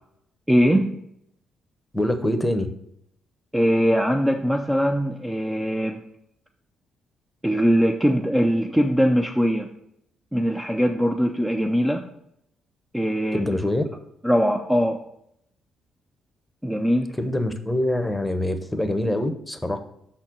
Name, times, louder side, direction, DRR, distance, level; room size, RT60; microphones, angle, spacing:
voice 1, 0.5-1.0 3.5-6.0 7.4-9.7 10.3-12.1 12.9-13.5 14.2-15.0 16.6-17.1, equal, 10° right, 3 dB, 0.5 m, -21 dB
voice 2, 1.9-2.7 13.3-13.8 17.2-19.8, left 1 dB, 10° left, 8 dB, 0.9 m, -24 dB
5.7 x 4.2 x 6.1 m, 0.75 s
supercardioid pair, 65°, 0 cm